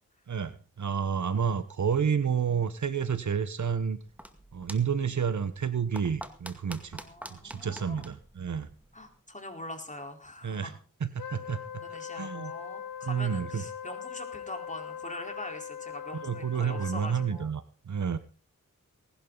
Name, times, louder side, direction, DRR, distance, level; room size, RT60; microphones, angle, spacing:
voice 1, 0.3-4.0 4.5-7.0 7.3-8.7 10.4-10.7 11.0-11.6 12.1-12.5 13.0-13.6 16.2-18.2, right 7 dB, 60° right, 13 dB, 1.3 m, -30 dB
sound 1, 4.0-9.2, equal, 5° right, 2.1 m, -48 dB
voice 2, 6.9-8.1 8.9-10.8 11.7-17.5, left 1 dB, 20° left, 4 dB, 4.4 m, -43 dB
Wind instrument woodwind instrument, 11.2-17.5, left 8 dB, 75° left, 2.1 m, -41 dB
19.5 x 11.5 x 4.1 m, 0.36 s
cardioid pair, 50°, 33 cm